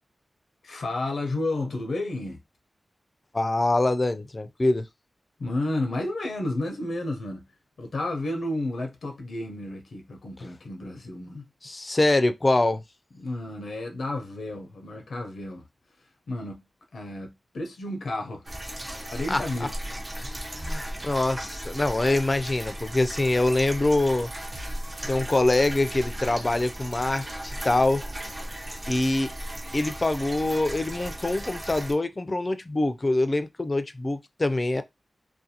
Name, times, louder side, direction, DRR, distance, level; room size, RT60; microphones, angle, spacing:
voice 1, 0.6-2.4 5.4-7.5 7.8-11.5 13.1-15.7 16.0-16.6 16.9-18.5 19.1-20.0, left 2 dB, 85° left, 0.6 m, -32 dB
voice 2, 3.3-4.9 11.6-12.8 18.9-19.4 20.2-24.3 25.0-28.0 28.9-29.3 29.7-34.8, left 2 dB, 35° left, 0.4 m, -24 dB
sound 1, 18.5-31.9, right 1 dB, 30° right, 0.6 m, -36 dB
sound 2, 24.5-25.8, equal, 70° right, 0.8 m, -43 dB
2.5 x 2.2 x 2.7 m
cardioid pair, 55°, 0 cm